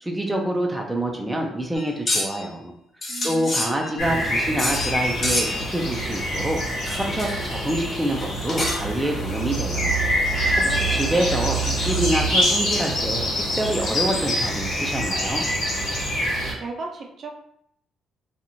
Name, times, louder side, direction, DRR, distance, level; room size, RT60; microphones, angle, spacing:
voice 1, 0.0-2.7 3.2-10.0 10.7-15.4, right 1 dB, 10° right, 0 dB, 0.5 m, -26 dB
sound 1, 1.8-2.5 3.0-4.1 4.6-5.0 5.2-5.7 6.9-7.5 8.2-9.0, left 1 dB, 40° left, 0.8 m, -27 dB
voice 2, 3.1-3.8 10.6-11.4 16.6-17.3, right 3 dB, 55° right, 1 dB, 0.5 m, -37 dB
sound 2, 4.0-16.5, equal, 90° left, 1.2 m, -25 dB
2.9 x 2.4 x 2.7 m, 0.74 s
cardioid pair, 90°, 0 cm